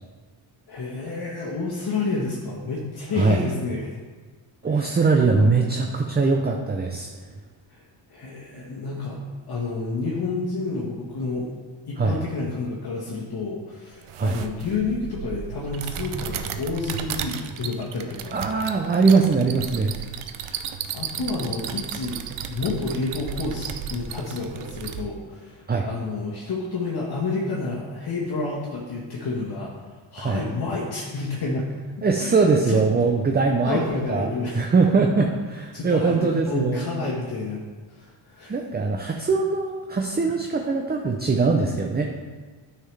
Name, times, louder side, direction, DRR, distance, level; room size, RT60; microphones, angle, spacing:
voice 1, 0.7-3.9 4.7-5.0 5.3-5.5 7.7-7.8 8.1-9.2 9.5-11.5 11.9-19.0 20.4-29.8 30.1-31.7 32.2-32.3 32.7-32.8 33.6-34.6 35.7-36.2 36.4-37.6 38.0-38.5, left 3 dB, 50° left, -5 dB, 1.4 m, -30 dB
voice 2, 4.6-7.1 12.0-12.2 14.2-14.4 18.3-20.0 25.7-25.9 30.2-30.4 32.0-33.8 34.1-36.9 38.5-42.1, right 4 dB, 20° right, 2 dB, 0.6 m, -21 dB
sound 1, 14.0-25.0, right 9 dB, 85° right, 0.7 m, -34 dB
9.2 x 5.7 x 3.4 m, 1.4 s
cardioid pair, 90°, 49 cm